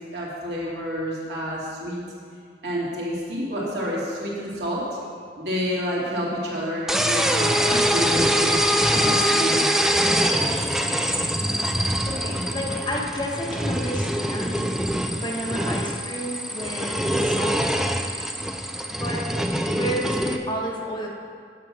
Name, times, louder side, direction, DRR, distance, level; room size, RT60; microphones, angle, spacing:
voice 1, 0.1-2.0 2.6-4.8 5.4-8.5 8.9-9.7, equal, 70° right, -6 dB, 2.6 m, -29 dB
sound 1, 6.9-20.4, equal, ahead, 0.4 m, -24 dB
voice 2, 11.6-14.7 15.1-17.8 18.9-19.2 19.6-21.1, equal, 25° left, -1 dB, 1.1 m, -31 dB
9.4 x 6.1 x 6.0 m, 2.1 s
head